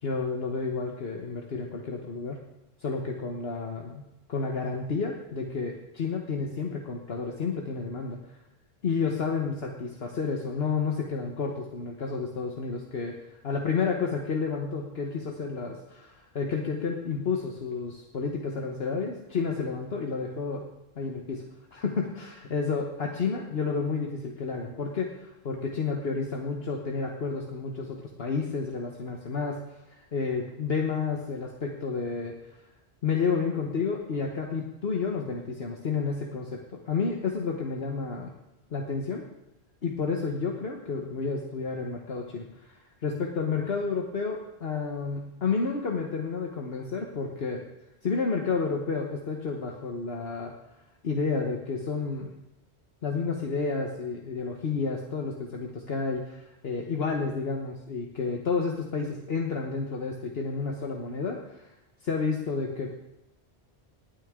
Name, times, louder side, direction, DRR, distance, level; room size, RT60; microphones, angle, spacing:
voice 1, 0.0-2.4 2.8-8.4 8.8-13.2 13.4-20.7 21.0-21.4 21.7-32.6 33.0-38.3 38.7-39.3 39.8-47.6 48.0-50.5 51.0-52.3 53.0-61.7 62.0-63.0, left 4 dB, 65° left, 1 dB, 1.4 m, -31 dB
19.5 x 9.1 x 3.7 m, 0.94 s
omnidirectional pair, 1.1 m